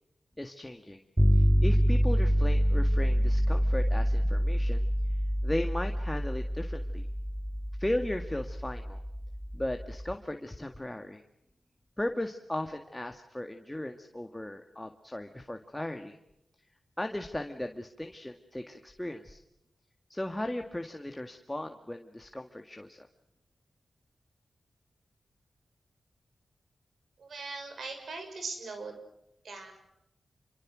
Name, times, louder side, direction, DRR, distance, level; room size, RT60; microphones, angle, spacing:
voice 1, 0.4-1.0 1.3-4.9 5.4-7.0 7.8-9.0 9.5-11.2 12.0-16.2 17.0-19.4 20.1-23.1, left 1 dB, 15° left, 5 dB, 2.0 m, -36 dB
sound 1, 1.2-10.1, equal, 15° right, 3.4 m, -27 dB
voice 2, 27.2-28.9 29.4-29.7, right 3 dB, 80° right, 5 dB, 6.4 m, -40 dB
27.0 x 25.0 x 6.3 m, 0.84 s
cardioid pair, 55°, 0 cm